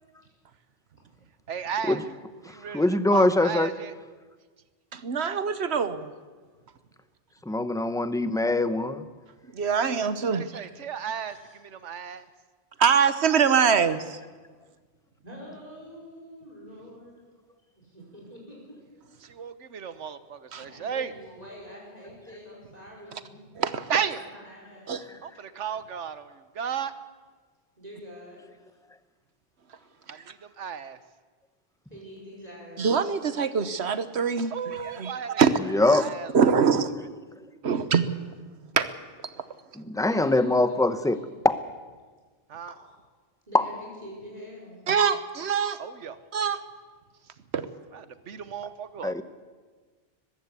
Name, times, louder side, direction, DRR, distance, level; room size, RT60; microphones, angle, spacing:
voice 1, 1.5-2.0 2.4-3.9 10.3-11.4 11.6-12.3 19.2-21.1 23.9-24.2 25.2-26.9 30.1-31.0 34.5-35.4 36.0-36.5 42.5-42.7 45.8-46.2 47.9-49.1, right 7 dB, 85° right, 13 dB, 1.4 m, -34 dB
voice 2, 2.7-3.7 7.5-9.0 35.7-36.0 39.8-41.2 41.4-41.6 43.5-43.6 49.0-49.2, left 2 dB, 5° left, 12 dB, 0.7 m, -22 dB
voice 3, 4.9-6.1 9.5-10.7 12.8-14.2 20.5-20.6 23.6-23.9 24.9-25.0 30.1-30.2 32.8-35.5 35.9-36.1 36.3-36.9 37.6-38.2 38.7-38.9 44.9-45.8 46.3-46.6 47.5-47.7, right 6 dB, 65° right, 13 dB, 1.3 m, -24 dB
voice 4, 15.2-17.2 17.8-18.8 20.5-23.4 24.0-25.0 27.8-28.7 31.9-32.9 40.0-41.3 43.5-44.8, equal, 35° right, -3 dB, 5.2 m, -45 dB
20.5 x 15.5 x 8.4 m, 1.4 s
omnidirectional pair, 1.2 m